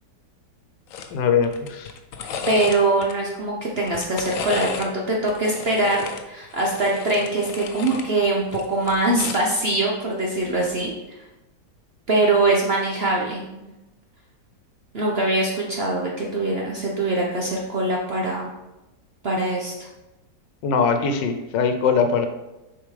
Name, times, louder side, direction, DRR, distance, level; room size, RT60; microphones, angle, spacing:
sound 1, 0.9-1.1 1.4-3.1 3.8-4.9 5.3-8.1 8.4-9.5 10.7-10.9, left 6 dB, 65° left, 0.9 m, -34 dB
voice 1, 1.1-1.9 20.6-22.3, left 6 dB, 80° left, 7 dB, 1.4 m, -21 dB
voice 2, 2.5-10.9 12.1-13.7 14.9-18.5 19.2-19.9, right 2 dB, 50° right, -2 dB, 0.8 m, -23 dB
6.8 x 4.7 x 3.3 m, 1.0 s
omnidirectional pair, 1.9 m